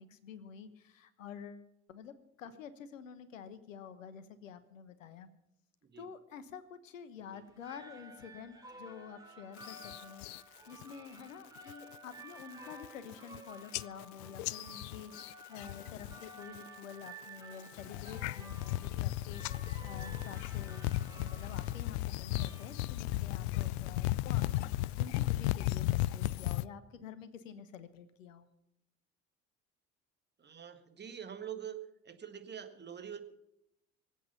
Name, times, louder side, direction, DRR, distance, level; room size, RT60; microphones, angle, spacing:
voice 1, 0.0-5.3 6.0-20.9 21.2-28.5, left 7 dB, 75° left, 14 dB, 1.2 m, -49 dB
sound 1, 7.4-23.3, right 2 dB, 10° right, 3.0 m, -53 dB
sound 2, 9.6-10.4 10.8-11.2 11.6-12.0 12.4-12.5 12.7-13.4 13.7-16.3 16.6-17.1 17.6-26.7, left 16 dB, 55° left, 0.5 m, -35 dB
voice 2, 30.4-31.8 32.0-33.2, right 8 dB, 25° right, 7 dB, 1.7 m, -45 dB
24.5 x 8.4 x 5.8 m, 0.82 s
figure-of-eight pair, 55°, 39 cm